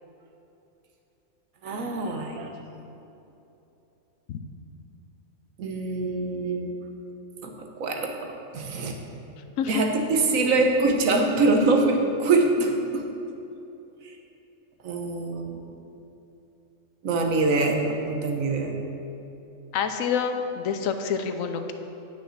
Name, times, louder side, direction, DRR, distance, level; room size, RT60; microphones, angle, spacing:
voice 1, 1.6-2.5 5.6-6.7 7.4-9.0 9.7-13.1 14.8-15.6 17.0-18.7, right 3 dB, 80° right, 3 dB, 1.4 m, -24 dB
voice 2, 19.7-21.7, left 7 dB, 80° left, 7 dB, 1.1 m, -27 dB
9.4 x 6.0 x 6.2 m, 2.9 s
omnidirectional pair, 1.4 m